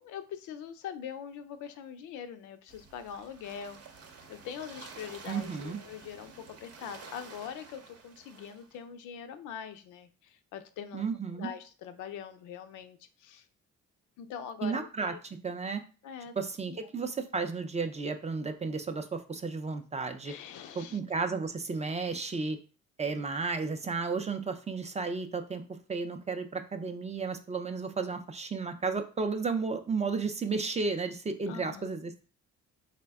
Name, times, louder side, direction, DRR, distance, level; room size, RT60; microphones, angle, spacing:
voice 1, 0.0-3.8 4.3-13.5 14.2-15.2 16.0-16.3 16.7-16.8 20.2-21.0 31.5-31.9, left 8 dB, 80° left, 9 dB, 0.5 m, -43 dB
sound 1, 2.7-8.8, right 4 dB, 50° right, 0.7 m, -50 dB
voice 2, 5.3-5.8 10.9-11.5 14.6-15.8 16.4-20.3 20.8-22.6 23.0-25.6 25.9-32.1, right 4 dB, 25° right, 7 dB, 0.4 m, -33 dB
3.3 x 2.1 x 3.4 m, 0.36 s
cardioid pair, 90°, 30 cm